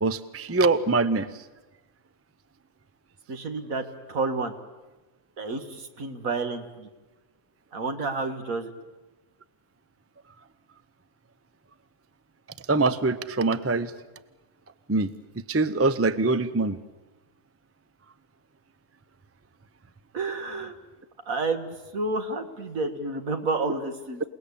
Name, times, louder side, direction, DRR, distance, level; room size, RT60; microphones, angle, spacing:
voice 1, 0.0-1.3 12.7-13.9 14.9-15.1 15.5-16.8, right 3 dB, 20° right, 14 dB, 0.4 m, -23 dB
voice 2, 3.3-4.5 5.4-6.9 7.7-8.7 20.1-20.8 21.3-24.2, right 3 dB, 65° right, 7 dB, 2.1 m, -30 dB
28.0 x 19.0 x 8.5 m, 1.1 s
omnidirectional pair, 1.6 m